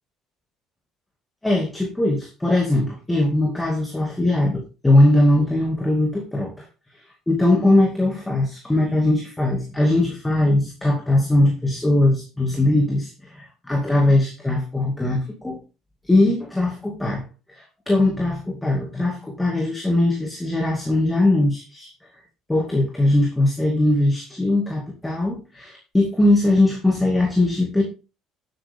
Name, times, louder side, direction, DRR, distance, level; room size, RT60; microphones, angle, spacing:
voice 1, 1.4-6.7 7.3-15.6 16.0-21.9 22.5-27.8, left 1 dB, 5° left, 1 dB, 2.3 m, -20 dB
11.0 x 8.5 x 3.6 m, 0.31 s
cardioid pair, 145°, 0 cm